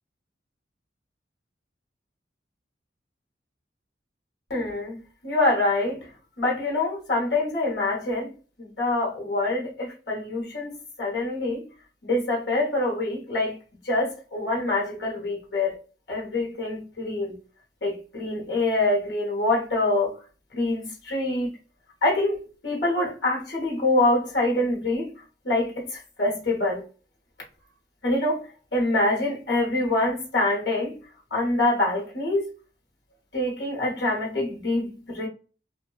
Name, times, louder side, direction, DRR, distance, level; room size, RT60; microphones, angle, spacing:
voice 1, 4.5-6.1 6.4-8.3 8.6-11.6 12.0-13.6 13.8-15.8 16.1-17.4 17.8-20.2 20.5-21.5 22.0-25.1 25.4-26.8 28.0-28.4 28.7-31.0 31.3-32.4 33.3-35.3, left 2 dB, 65° left, 0.9 m, -25 dB
2.6 x 2.1 x 2.2 m
head